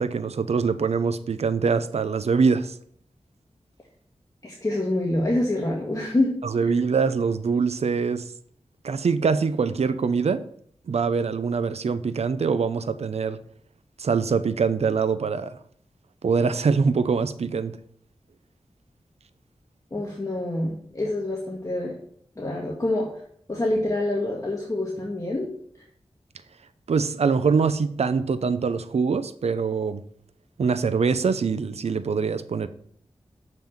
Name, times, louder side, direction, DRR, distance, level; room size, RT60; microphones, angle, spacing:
voice 1, 0.0-2.8 6.4-8.3 8.8-10.4 10.9-13.4 14.0-15.6 16.2-17.8 26.9-30.0 30.6-32.7, right 5 dB, 75° right, 0.6 m, -24 dB
voice 2, 4.4-6.3 6.6-6.7 19.9-21.9 22.4-23.1 23.5-25.5, left 1 dB, 30° left, 1.7 m, -26 dB
6.9 x 5.9 x 7.3 m
wide cardioid pair, 80°, 11 cm